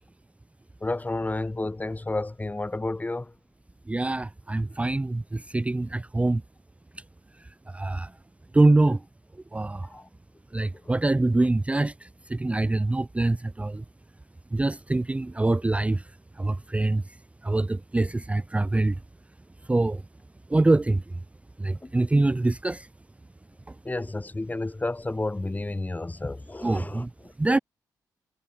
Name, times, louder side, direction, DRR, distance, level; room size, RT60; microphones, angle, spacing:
voice 1, 0.8-3.3 9.8-10.1 10.6-10.9 21.8-21.9 23.8-27.3, left 2 dB, 20° left, 4.0 m, -31 dB
voice 2, 3.9-6.4 7.7-8.1 8.5-9.0 9.5-9.9 10.5-13.8 14.5-16.0 16.4-17.0 17.4-18.9 19.7-20.0 20.5-21.0 21.6-22.9 26.6-27.1 27.4-27.6, right 2 dB, 15° right, 0.6 m, -24 dB
supercardioid pair, 55°, 8 cm